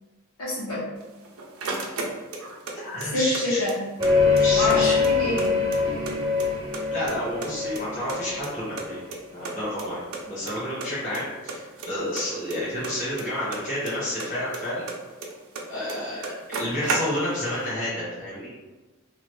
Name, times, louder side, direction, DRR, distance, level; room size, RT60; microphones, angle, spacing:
voice 1, 0.4-0.8 3.0-3.8 4.5-6.0, left 1 dB, 75° left, -9 dB, 1.3 m, -27 dB
sound 1, 1.0-2.7 3.0-4.1 4.4-4.5 4.7-6.1 6.4-7.1 7.4-8.9 9.1-9.2 9.5-9.6 9.8-9.9 10.1-10.5 10.8-11.2 11.5-13.9 14.2-15.6 15.9-16.0 16.2-17.5, right 3 dB, 75° right, 0.5 m, -33 dB
voice 2, 2.7-3.6 4.4-5.0 6.9-9.0 9.3-10.0 10.2-14.9 15.7-18.5, left 1 dB, 35° left, -10 dB, 1.1 m, -30 dB
sound 2, 4.0-9.6, left 4 dB, 20° right, 0.5 m, -24 dB
3.0 x 2.4 x 3.1 m, 1.2 s
head